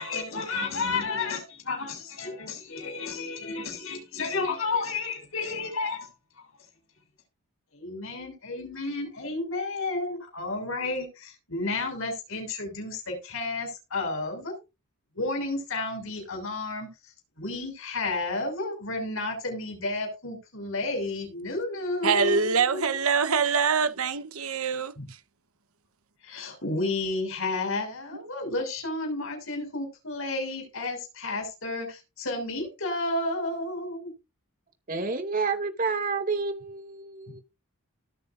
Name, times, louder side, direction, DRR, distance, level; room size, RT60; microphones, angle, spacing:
voice 1, 0.0-6.1 6.4-6.5 7.7-14.5 15.1-22.8 25.0-25.1 26.2-34.1 37.3-37.4, left 3 dB, 65° left, 6.6 m, -32 dB
voice 2, 22.0-24.9, right 5 dB, 80° right, 1.2 m, -24 dB
voice 3, 34.9-37.4, right 4 dB, 40° right, 2.5 m, -29 dB
19.0 x 9.8 x 2.7 m
head